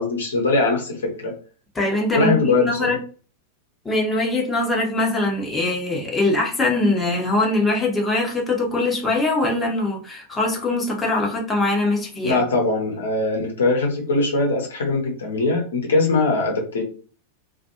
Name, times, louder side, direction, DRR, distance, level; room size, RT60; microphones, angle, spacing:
voice 1, 0.0-1.3 2.1-2.9 12.2-16.8, left 3 dB, 65° left, 0.8 m, -21 dB
voice 2, 1.7-3.0 3.8-12.4, left 2 dB, 15° left, 0.9 m, -22 dB
2.5 x 2.3 x 2.8 m
figure-of-eight pair, 90°, 0 cm